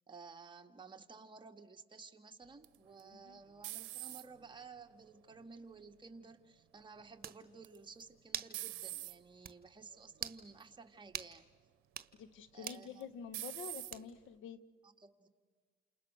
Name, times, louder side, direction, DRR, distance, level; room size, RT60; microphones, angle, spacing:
voice 1, 0.1-11.5 12.5-13.2 14.8-15.3, right 4 dB, 25° right, 4 dB, 1.9 m, -54 dB
sound 1, 2.6-4.5 5.1-5.6 7.6-8.0 8.5-9.2 9.9-10.2 10.6-10.7 12.6-13.0 13.3-13.9, right 16 dB, 90° right, 0.8 m, -44 dB
sound 2, 7.2-7.4 8.3-8.6 9.0-9.1 9.4-9.6 10.1-10.4 11.1-11.3 11.8-12.1 12.7-12.9 13.9-14.3, right 8 dB, 50° right, 1.4 m, -43 dB
voice 2, 12.2-14.7, left 7 dB, 80° left, 14 dB, 1.4 m, -48 dB
29.0 x 27.5 x 6.3 m, 1.5 s
cardioid pair, 90°, 20 cm